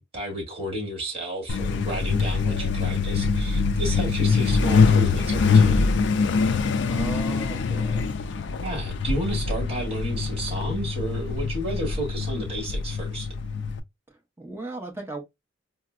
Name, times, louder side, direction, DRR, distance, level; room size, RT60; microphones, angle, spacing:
voice 1, 0.0-5.8 6.6-6.7 8.0-8.1 8.6-13.3, right 1 dB, 30° right, 1.7 m, -32 dB
Truck, 1.5-13.8, left 4 dB, 65° left, 0.4 m, -23 dB
voice 2, 6.8-8.1 14.4-15.2, right 2 dB, 10° right, 0.8 m, -36 dB
4.2 x 2.0 x 2.3 m
head